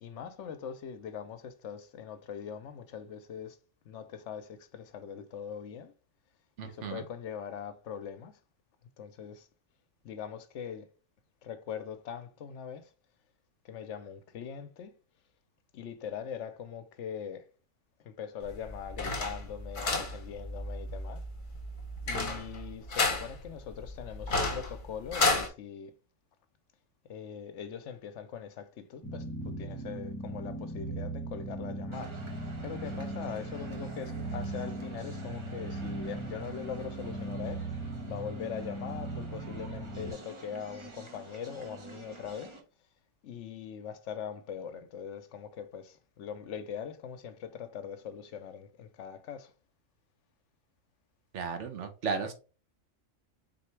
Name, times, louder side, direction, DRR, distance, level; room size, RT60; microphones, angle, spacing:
voice 1, 0.0-3.6 3.8-5.9 6.6-8.4 9.0-9.5 10.0-10.9 11.4-12.9 13.6-15.0 15.7-17.5 18.0-21.2 22.0-25.9 27.1-32.2 32.6-42.6 43.2-49.5, left 8 dB, 75° left, 0.9 m, -42 dB
voice 2, 6.6-7.0 51.3-52.3, right 5 dB, 70° right, 1.1 m, -34 dB
sound 1, 18.4-25.5, left 3 dB, 45° left, 1.0 m, -32 dB
sound 2, 29.0-40.1, right 2 dB, 20° left, 1.0 m, -38 dB
sound 3, 31.9-42.6, right 3 dB, 30° right, 0.7 m, -49 dB
4.2 x 3.3 x 3.1 m
omnidirectional pair, 1.3 m